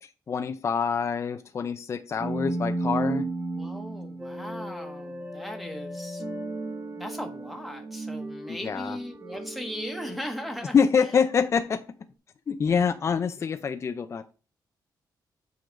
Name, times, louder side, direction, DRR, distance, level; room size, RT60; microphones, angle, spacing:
voice 1, 0.0-3.3 8.5-9.0 10.7-11.8 12.5-14.3, left 6 dB, 40° left, 0.5 m, -26 dB
sound 1, 2.2-11.2, right 2 dB, 20° right, 1.2 m, -34 dB
voice 2, 3.6-6.2 6.9-10.8, equal, ahead, 1.2 m, -38 dB
7.7 x 4.0 x 5.1 m
cardioid pair, 125°, 8 cm